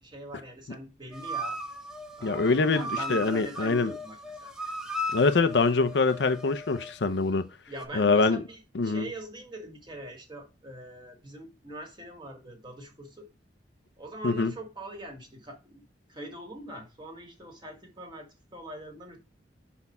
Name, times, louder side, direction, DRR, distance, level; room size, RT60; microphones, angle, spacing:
voice 1, 0.0-1.6 2.2-4.5 7.7-13.3 14.0-15.8 16.1-19.2, right 1 dB, 25° right, 1.9 m, -42 dB
sound 1, 1.1-7.0 7.7-7.9, equal, 5° right, 0.9 m, -37 dB
voice 2, 2.2-3.9 5.1-7.4 7.9-8.4 8.7-9.1 14.2-14.5, left 4 dB, 75° left, 0.6 m, -24 dB
5.9 x 4.2 x 5.4 m
head